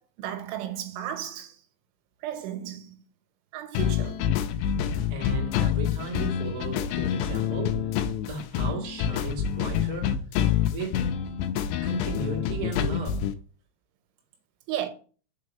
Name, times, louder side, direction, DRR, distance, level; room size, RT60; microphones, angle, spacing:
voice 1, 0.2-1.6 2.2-3.0 3.5-4.2 14.7-14.9, right 11 dB, 85° right, 3.4 m, -34 dB
sound 1, 3.7-13.3, left 9 dB, 80° left, 2.5 m, -27 dB
voice 2, 5.1-7.9 8.2-10.2 10.6-11.0 11.8-13.3, right 3 dB, 60° right, 0.9 m, -36 dB
6.5 x 4.7 x 5.3 m
omnidirectional pair, 5.4 m